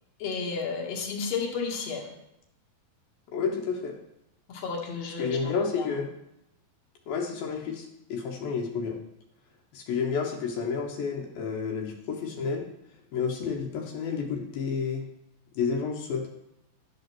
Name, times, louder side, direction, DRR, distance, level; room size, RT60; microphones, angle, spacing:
voice 1, 0.2-2.1 4.5-5.9, left 5 dB, 50° left, -1 dB, 2.5 m, -32 dB
voice 2, 3.3-4.0 5.2-6.1 7.1-9.0 9.7-12.7 13.1-15.0 15.6-16.3, left 5 dB, 80° left, 1 dB, 2.9 m, -30 dB
10.5 x 5.3 x 6.0 m, 0.85 s
omnidirectional pair, 4.1 m